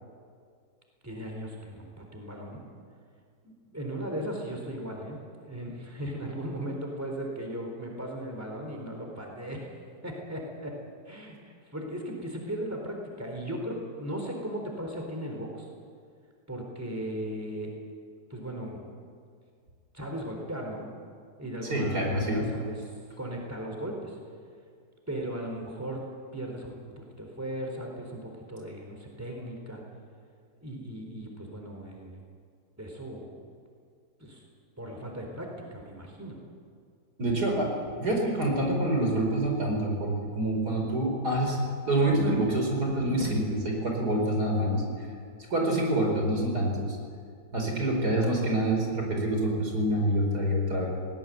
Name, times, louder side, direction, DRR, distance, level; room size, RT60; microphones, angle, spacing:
voice 1, 1.0-2.6 3.7-9.6 10.0-10.8 11.1-15.7 16.5-17.7 18.3-18.9 19.9-20.9 21.4-22.9 23.2-24.2 25.1-26.0 26.3-29.8 30.6-32.2 32.8-33.3 34.2-34.4 34.8-36.4, right 1 dB, 10° right, 1 dB, 4.1 m, -37 dB
voice 2, 21.7-22.5 37.2-37.7 38.0-41.6 41.9-44.8 45.5-47.0 47.5-50.9, right 1 dB, 75° right, 1 dB, 5.1 m, -26 dB
19.5 x 18.0 x 9.4 m, 2.2 s
omnidirectional pair, 1.7 m